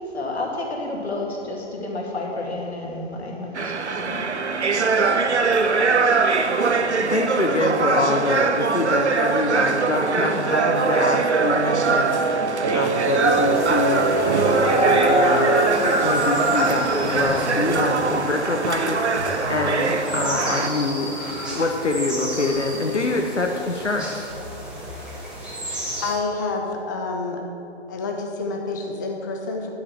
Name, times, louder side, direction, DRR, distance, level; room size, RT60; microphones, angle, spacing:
voice 1, 0.1-4.2 4.8-5.0, left 2 dB, 65° left, -1 dB, 2.5 m, -30 dB
sound 1, 3.6-20.7, right 4 dB, 75° right, 0.9 m, -23 dB
voice 2, 7.1-12.2 12.7-24.1, left 2 dB, 85° left, 2 dB, 1.0 m, -25 dB
sound 2, 10.5-15.7, right 3 dB, 20° right, 0.7 m, -23 dB
sound 3, 13.2-26.2, equal, 5° right, 2.0 m, -28 dB
voice 3, 26.0-27.4 27.9-29.7, left 3 dB, 15° left, 1 dB, 0.4 m, -28 dB
10.0 x 7.5 x 7.5 m, 3.0 s
figure-of-eight pair, 130°, 35 cm